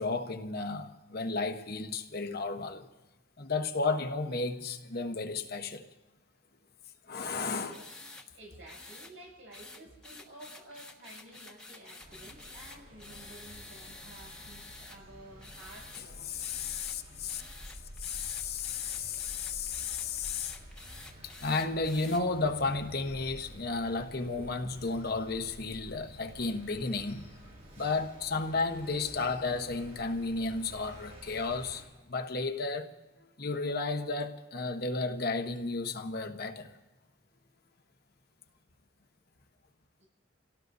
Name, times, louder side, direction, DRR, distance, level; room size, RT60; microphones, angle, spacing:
voice 1, 0.0-2.9 3.4-5.9 7.1-7.7 16.3-17.4 18.0-20.6 21.2-27.3 27.8-32.9 33.4-36.8, left 3 dB, 50° left, 6 dB, 1.0 m, -33 dB
voice 2, 7.5-7.9 8.3-16.4 40.0-40.1, right 1 dB, 80° right, -3 dB, 7.6 m, -52 dB
sound 1, 7.7-8.3 8.7-9.1 9.5-15.0 15.4-16.0 16.4-17.0 17.3-22.2, left 2 dB, 5° left, 1.4 m, -49 dB
sound 2, 12.0-31.8, equal, 50° right, 7.0 m, -51 dB
29.0 x 17.5 x 2.7 m, 1.1 s
head